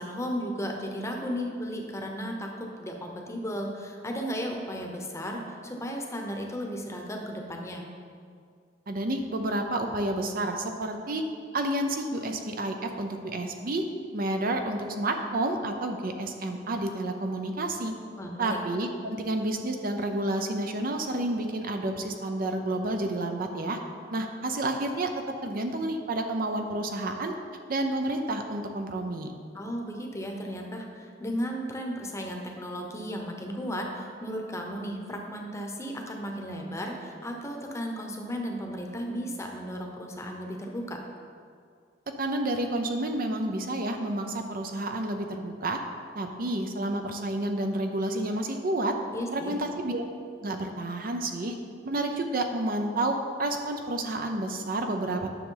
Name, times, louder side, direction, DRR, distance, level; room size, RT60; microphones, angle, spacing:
voice 1, 0.0-7.8 18.2-18.6 29.5-41.0 49.1-49.6, equal, 15° left, 1 dB, 0.9 m, -35 dB
voice 2, 8.9-11.2 11.5-13.8 14.1-17.9 18.4-23.8 24.1-25.1 25.4-27.3 27.7-29.3 42.2-45.8 46.1-48.9 49.3-50.0 50.4-51.5 51.8-55.3, right 1 dB, 50° right, 5 dB, 0.6 m, -30 dB
9.9 x 6.2 x 3.9 m, 2.2 s
head